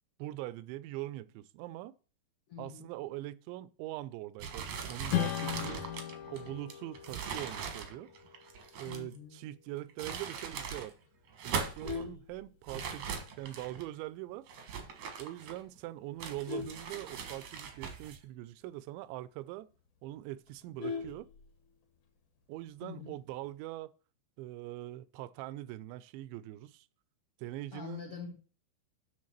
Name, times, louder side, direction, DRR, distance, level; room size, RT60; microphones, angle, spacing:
voice 1, 0.2-2.0 2.6-5.8 6.3-8.1 8.8-10.9 11.4-14.5 15.2-19.7 20.0-21.3 22.5-23.9 24.4-26.9 27.4-28.1, right 16 dB, 85° right, 2.8 m, -42 dB
voice 2, 2.5-2.9 8.9-9.4 22.8-23.1 27.7-28.4, left 6 dB, 70° left, 1.3 m, -44 dB
sound 1, 4.4-9.2 9.8-10.9 11.3-12.0 12.7-13.9 14.5-15.8 16.2-18.2, right 6 dB, 70° right, 1.8 m, -40 dB
Strum, 5.1-10.0, left 12 dB, 85° left, 3.3 m, -39 dB
Vehicle horn car horn honking, 11.6-13.0 13.5-13.8 14.1-14.2 14.6-14.7 15.0-15.3 15.9-17.7 18.1-18.2 18.5-18.6 19.0-19.1 19.4-19.5 19.8-21.8 23.0-23.5, left 5 dB, 50° left, 2.7 m, -42 dB
9.6 x 4.1 x 7.3 m
omnidirectional pair, 5.3 m